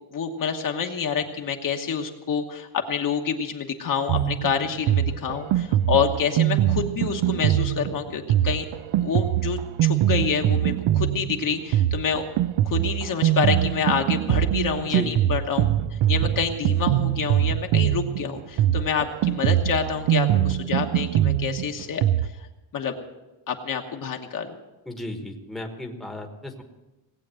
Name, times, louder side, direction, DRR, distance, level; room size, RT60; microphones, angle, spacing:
voice 1, 0.1-8.6 9.0-12.3 12.6-15.7 16.1-22.0 22.7-22.9 23.5-24.6, left 6 dB, 45° left, 3 dB, 1.3 m, -27 dB
Drum kit, 4.1-22.3, right 12 dB, 80° right, 0.7 m, -23 dB
sound 1, 4.2-7.7, left 3 dB, 90° left, 1.6 m, -43 dB
voice 2, 14.8-15.3 24.9-26.6, left 1 dB, ahead, 2 dB, 1.3 m, -34 dB
18.5 x 8.6 x 7.7 m, 1.0 s
cardioid pair, 170°, 45 cm